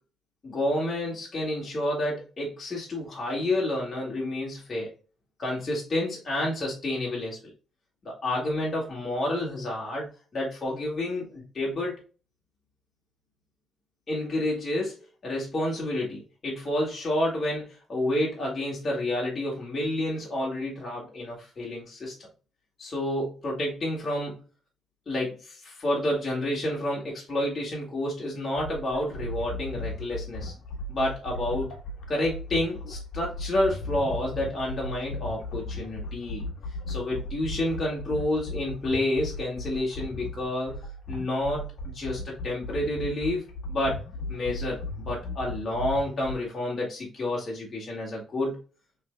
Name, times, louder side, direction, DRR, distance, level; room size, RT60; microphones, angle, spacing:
voice 1, 0.4-4.9 5.4-7.5 8.0-11.9 14.1-22.1 22.8-24.4 25.1-30.5 30.9-31.7 32.1-36.5 36.9-40.8 41.1-41.6 41.9-43.4 43.7-48.5, left 1 dB, 35° left, -4 dB, 1.7 m, -29 dB
sound 1, 28.6-46.3, left 2 dB, 70° left, 1.2 m, -37 dB
5.5 x 3.4 x 2.2 m, 0.35 s
cardioid pair, 90°, 0 cm